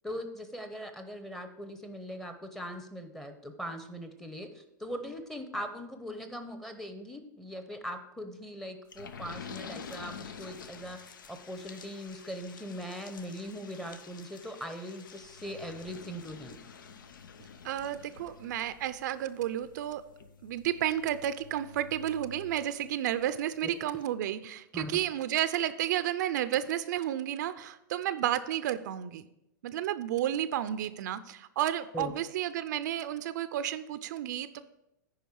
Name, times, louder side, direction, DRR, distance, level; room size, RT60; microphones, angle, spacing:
voice 1, 0.0-11.0 11.3-16.6 23.6-23.7 24.7-24.9 31.9-32.1, equal, 5° left, 7 dB, 0.8 m, -40 dB
sound 1, 8.9-23.2 23.6-23.7 24.0-24.1, left 6 dB, 90° left, 0.7 m, -49 dB
voice 2, 17.6-20.0 20.4-29.3 29.6-34.6, right 11 dB, 65° right, 13 dB, 0.5 m, -32 dB
9.3 x 5.1 x 4.7 m, 0.85 s
hypercardioid pair, 130°, 10 cm